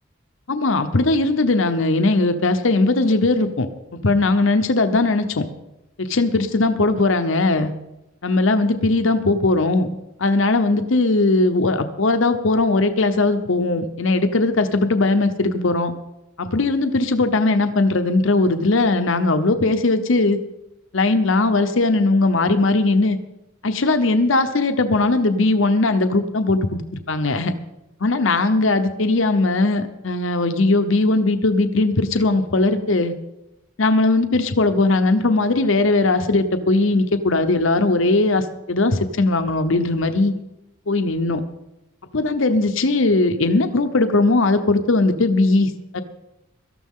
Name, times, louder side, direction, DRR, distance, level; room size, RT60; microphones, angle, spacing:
voice 1, 0.5-5.5 6.0-7.7 8.2-9.9 10.2-15.9 16.4-20.4 20.9-23.2 23.6-26.8 27.1-27.5 28.0-33.1 33.8-40.3 40.9-41.4 42.1-46.0, left 2 dB, 70° left, 8 dB, 0.8 m, -19 dB
18.0 x 13.5 x 3.7 m, 0.93 s
head